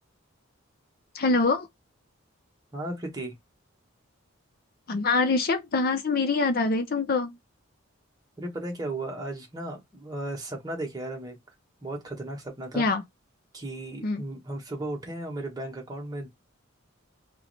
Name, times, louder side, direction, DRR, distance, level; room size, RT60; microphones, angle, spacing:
voice 1, 1.1-1.7 4.9-7.4 12.7-13.0 14.0-14.2, left 3 dB, 45° left, 0.5 m, -24 dB
voice 2, 2.7-3.3 8.4-11.4 11.8-12.9 13.5-16.3, right 1 dB, 20° right, 1.3 m, -35 dB
3.1 x 2.8 x 4.0 m
head